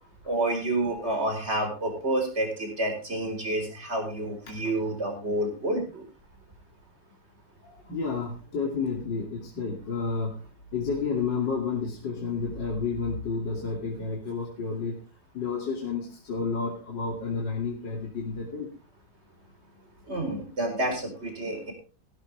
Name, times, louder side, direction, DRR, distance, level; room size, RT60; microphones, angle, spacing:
voice 1, 0.2-6.0 20.1-21.7, right 1 dB, 30° right, 4 dB, 4.8 m, -29 dB
voice 2, 7.6-10.4 10.7-15.0 15.3-18.7, left 4 dB, 60° left, 0 dB, 3.3 m, -31 dB
16.0 x 13.0 x 3.4 m, 0.34 s
omnidirectional pair, 2.2 m